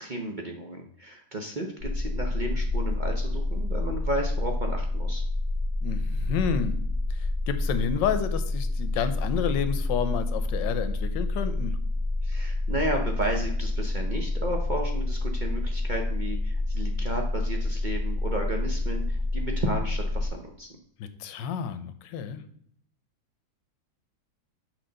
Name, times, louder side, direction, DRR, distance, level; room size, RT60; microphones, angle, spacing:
voice 1, 0.0-5.2 12.2-20.7, right 1 dB, 55° right, 1 dB, 0.5 m, -33 dB
sound 1, 1.8-20.3, left 2 dB, 90° right, 3.1 m, -28 dB
voice 2, 5.8-6.8 7.1-11.8 21.0-22.4, left 8 dB, 85° left, 10 dB, 1.3 m, -30 dB
6.2 x 4.9 x 3.8 m, 0.65 s
omnidirectional pair, 2.0 m